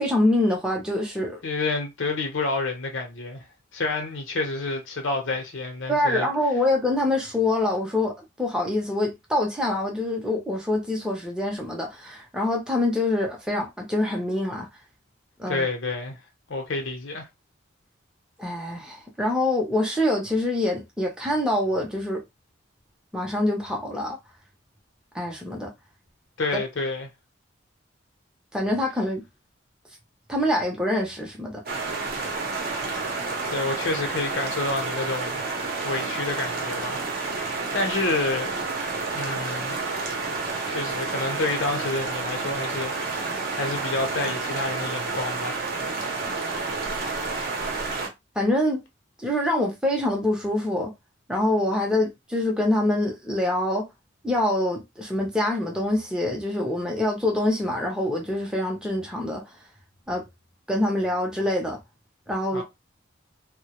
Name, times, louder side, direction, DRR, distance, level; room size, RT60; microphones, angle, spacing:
voice 1, 0.0-1.4 5.9-14.7 15.4-15.7 18.4-22.2 23.1-24.2 25.1-25.7 26.5-26.6 28.5-29.2 30.3-31.6 48.4-48.8 49.2-50.9 51.3-53.9 54.2-59.4 60.1-60.2 60.7-61.8 62.3-62.6, left 1 dB, 5° right, 0.5 m, -25 dB
voice 2, 1.4-3.5 3.7-6.3 15.5-16.2 16.5-17.3 26.4-27.1 33.5-35.4 35.8-38.6 39.1-40.0 40.6-45.7 62.5-62.6, left 3 dB, 70° left, 0.7 m, -29 dB
sound 1, 31.7-48.1, right 3 dB, 45° right, 0.6 m, -30 dB
2.2 x 2.0 x 2.9 m
head